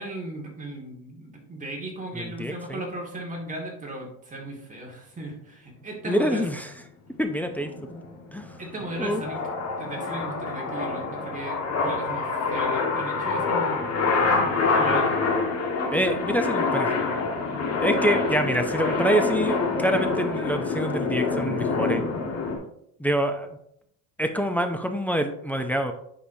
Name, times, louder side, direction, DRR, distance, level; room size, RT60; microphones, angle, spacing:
voice 1, 0.0-6.4 8.6-9.4 9.8-13.8 14.3-15.1, right 1 dB, 20° right, -1 dB, 1.9 m, -36 dB
voice 2, 2.1-2.9 6.1-6.7 7.2-8.0 8.3-8.6 9.0-9.2 15.9-17.1 17.8-22.0 23.0-23.5 24.2-25.9, equal, 5° left, 5 dB, 0.4 m, -26 dB
sound 1, 7.2-22.6, left 4 dB, 40° left, 1.5 m, -26 dB
10.0 x 4.8 x 2.7 m, 0.74 s
cardioid pair, 125°, 40 cm